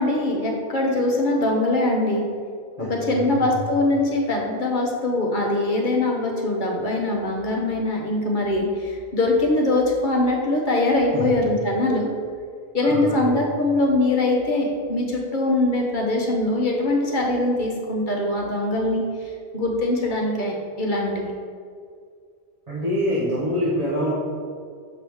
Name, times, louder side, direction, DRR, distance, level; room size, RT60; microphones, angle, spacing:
voice 1, 0.0-2.2 2.8-12.1 12.7-21.3, left 2 dB, 45° left, -1 dB, 1.0 m, -22 dB
voice 2, 2.8-3.4 11.1-11.3 12.8-13.3 22.7-24.1, equal, 35° right, -8 dB, 1.1 m, -26 dB
7.0 x 4.6 x 3.5 m, 2.2 s
omnidirectional pair, 1.2 m